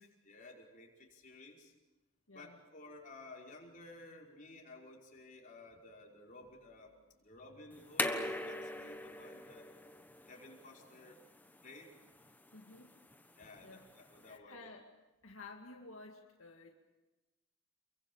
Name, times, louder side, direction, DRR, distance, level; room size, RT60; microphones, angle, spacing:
voice 1, 0.2-1.7 2.3-9.7 10.3-11.2 11.6-11.9 13.4-14.7, left 2 dB, 40° left, -1 dB, 5.3 m, -55 dB
voice 2, 2.3-2.6 12.5-12.9 13.6-13.9 14.2-14.9 15.2-16.7, left 3 dB, 75° left, 1 dB, 2.2 m, -53 dB
sound 1, 7.7-14.4, left 1 dB, 10° left, 1.2 m, -42 dB
28.5 x 23.0 x 7.2 m, 1.1 s
head